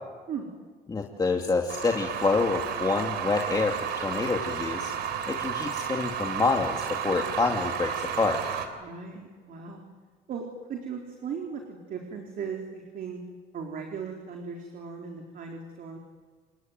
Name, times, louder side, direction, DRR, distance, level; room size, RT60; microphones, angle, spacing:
voice 1, 0.9-4.9 5.3-8.4, left 3 dB, 25° left, 2 dB, 2.5 m, -27 dB
meat grinder, 1.7-8.7, right 9 dB, 80° right, 3.6 m, -32 dB
voice 2, 8.8-9.8 10.3-13.2 13.5-16.0, right 6 dB, 60° right, 2 dB, 4.0 m, -37 dB
29.0 x 20.5 x 9.4 m, 1.5 s
cardioid pair, 110°, 17 cm